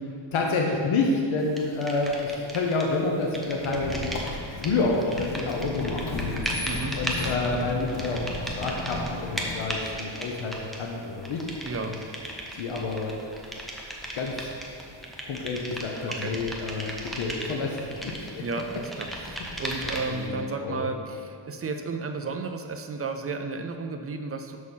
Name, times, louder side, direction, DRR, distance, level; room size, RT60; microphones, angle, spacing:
voice 1, 0.3-4.1 4.6-6.4 6.9-11.5 11.7-12.0 12.5-13.1 14.1-14.3 15.2-17.8 18.0-18.4 19.4-19.6 20.1-20.8, left 3 dB, 85° left, 0 dB, 1.1 m, -28 dB
sound 1, 1.6-3.0 3.2-20.2, equal, ahead, 0.7 m, -36 dB
Squeak, 3.6-10.0, left 3 dB, 60° left, 1.0 m, -35 dB
voice 2, 6.6-7.0 11.6-12.0 16.1-16.3 18.4-24.6, right 3 dB, 30° right, 6 dB, 0.4 m, -33 dB
6.3 x 6.0 x 5.5 m, 2.6 s
wide cardioid pair, 175°, 47 cm